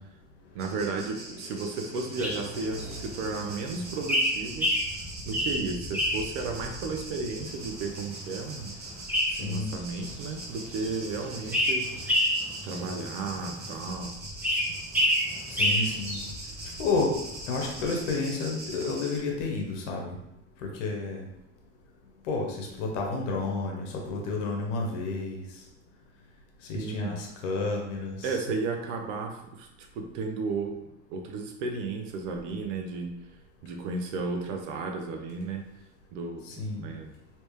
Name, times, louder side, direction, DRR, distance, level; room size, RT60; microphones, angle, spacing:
voice 1, 0.5-4.7 5.2-9.0 9.4-11.9 12.6-14.1 26.7-27.2 28.2-29.7 29.9-30.7 31.1-33.1 33.6-35.6 36.1-37.1, right 4 dB, 75° right, 3 dB, 0.8 m, -33 dB
sound 1, 0.6-19.2, right 2 dB, 25° right, 1.1 m, -43 dB
sound 2, 2.2-17.9, equal, 5° right, 1.0 m, -30 dB
voice 2, 2.3-3.0 9.3-9.7 15.5-16.2 16.8-17.1 17.5-20.2 20.6-21.3 22.2-25.4 26.7-28.4 36.4-36.8, left 3 dB, 75° left, 1 dB, 1.1 m, -31 dB
3.3 x 3.0 x 3.2 m, 0.85 s
hypercardioid pair, 90°, 37 cm